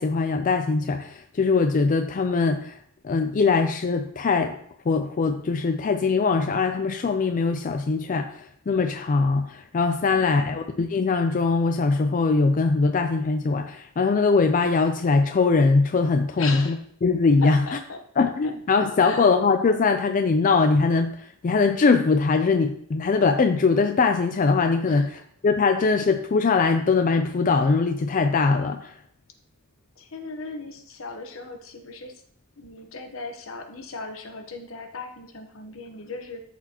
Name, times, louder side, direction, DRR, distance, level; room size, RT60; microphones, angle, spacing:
voice 1, 0.0-2.7 3.0-4.6 4.9-8.4 8.7-16.7 17.0-17.6 18.2-21.1 21.4-25.1 25.4-28.9, left 4 dB, 40° left, 6 dB, 0.4 m, -21 dB
voice 2, 16.4-16.8 17.4-18.0 18.4-18.5 19.0-19.2 24.8-25.2 30.0-32.2 32.6-36.4, left 3 dB, 70° left, 5 dB, 1.0 m, -38 dB
12.5 x 4.2 x 2.9 m, 0.65 s
head